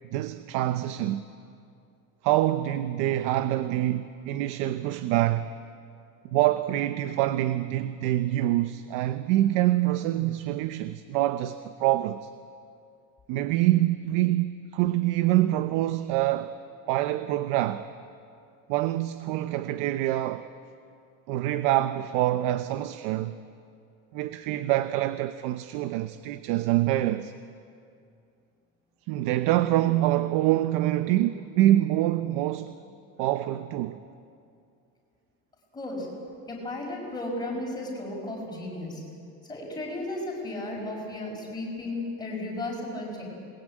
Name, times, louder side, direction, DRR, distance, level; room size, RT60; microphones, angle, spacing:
voice 1, 0.1-1.3 2.2-5.5 6.2-12.3 13.3-16.6 16.9-17.9 18.7-20.5 21.3-23.4 24.1-27.3 29.1-32.7 33.2-34.0, right 14 dB, 75° right, 0.9 m, -25 dB
voice 2, 35.7-36.1 36.5-39.0 39.5-43.2, left 1 dB, 10° left, 5.7 m, -34 dB
27.5 x 20.5 x 8.9 m
cardioid pair, 180°, 33 cm